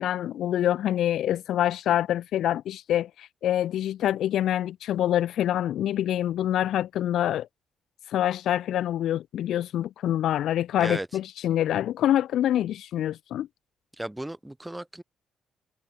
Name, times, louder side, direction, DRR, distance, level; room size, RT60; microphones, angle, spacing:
voice 1, 0.0-7.5 8.1-13.5, left 11 dB, 75° left, 0.5 m, -26 dB
voice 2, 14.0-15.0, right 1 dB, 10° right, 4.0 m, -34 dB
cardioid pair, 90°, 0 cm